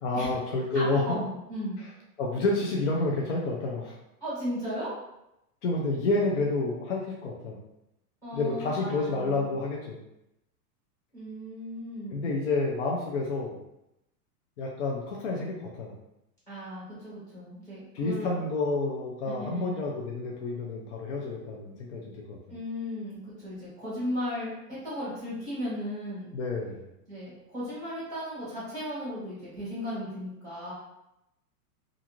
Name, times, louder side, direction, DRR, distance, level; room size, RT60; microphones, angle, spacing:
voice 1, 0.0-1.0 2.2-3.9 5.6-7.6 8.3-10.0 12.1-13.6 14.6-15.9 17.9-22.4 26.3-26.8, left 2 dB, 50° left, -2 dB, 0.5 m, -29 dB
voice 2, 0.7-1.8 4.2-4.9 8.2-9.5 11.1-12.3 16.5-18.4 19.2-19.8 22.5-26.3 27.1-30.7, equal, 5° left, -10 dB, 0.9 m, -36 dB
2.5 x 2.4 x 2.9 m, 0.87 s
supercardioid pair, 180°, 46 cm